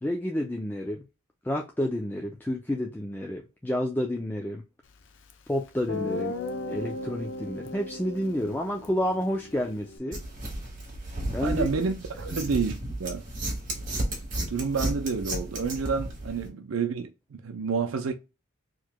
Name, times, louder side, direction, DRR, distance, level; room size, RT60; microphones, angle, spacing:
voice 1, 0.0-1.0 1.4-4.6 5.5-6.3 6.7-10.2 11.3-11.7, left 1 dB, 10° left, 0.4 m, -30 dB
Guitar, 5.3-5.4 5.9-10.0, left 2 dB, 65° left, 0.6 m, -36 dB
sound 1, 10.1-16.5, right 1 dB, 40° right, 1.6 m, -33 dB
voice 2, 11.4-13.2 14.5-18.1, right 5 dB, 80° right, 0.5 m, -29 dB
4.6 x 3.0 x 2.2 m
head